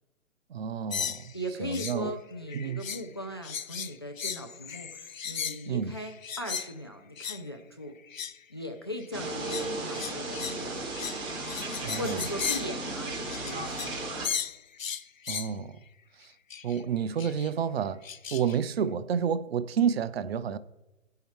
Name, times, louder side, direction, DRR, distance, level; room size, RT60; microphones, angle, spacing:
voice 1, 0.5-1.3 1.6-2.1 2.5-2.8 5.6-5.9 11.8-12.2 15.3-15.8 16.2-16.3 16.6-18.1 18.3-20.6, right 7 dB, 50° right, 0.6 m, -30 dB
sound 1, 0.9-2.0 2.3-3.1 3.4-6.7 7.2-7.4 8.0-8.4 9.0-14.0 14.2-15.6 16.5-16.8 17.2-17.5 18.0-18.6, left 7 dB, 80° left, 0.7 m, -36 dB
voice 2, 1.3-8.0 8.5-10.9 12.0-14.0, equal, 20° left, 0.4 m, -39 dB
sound 2, 9.1-14.3, right 2 dB, 10° right, 0.6 m, -35 dB
15.5 x 5.7 x 4.5 m
figure-of-eight pair, 135°, 39 cm